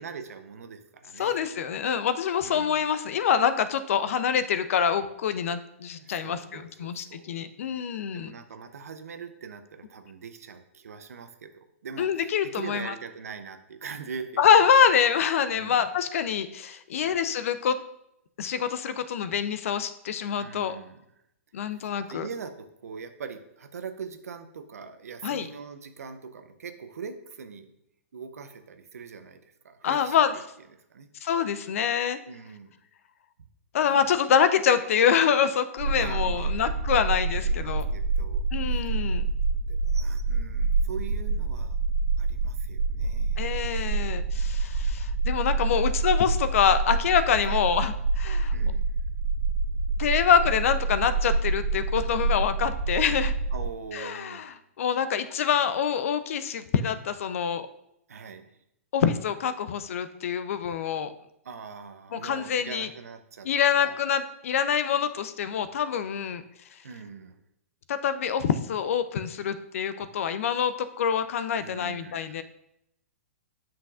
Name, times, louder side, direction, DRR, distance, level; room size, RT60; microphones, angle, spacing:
voice 1, 0.0-1.5 2.4-2.9 6.0-7.4 8.1-14.6 15.5-15.9 17.0-17.3 20.4-21.0 21.6-27.7 28.1-30.4 30.7-31.1 32.3-32.7 33.8-34.0 35.8-39.0 39.7-41.8 42.2-43.6 47.4-47.6 48.5-49.0 53.5-54.6 58.1-58.6 61.4-64.0 66.8-67.4 71.5-72.4, right 5 dB, 80° right, 9 dB, 0.7 m, -42 dB
voice 2, 1.2-8.3 12.0-12.9 14.4-17.8 18.4-20.8 21.5-22.3 25.2-25.5 29.8-30.3 31.2-32.2 33.7-37.9 38.5-39.2 43.4-48.5 50.0-53.3 53.9-54.4 54.8-57.7 58.9-61.1 62.1-62.9 63.4-66.4 67.9-72.4, left 7 dB, 65° left, 12 dB, 0.5 m, -25 dB
sound 1, 35.8-53.7, right 3 dB, 60° right, 1.8 m, -27 dB
7.5 x 5.8 x 2.4 m, 0.79 s
hypercardioid pair, 130°, 8 cm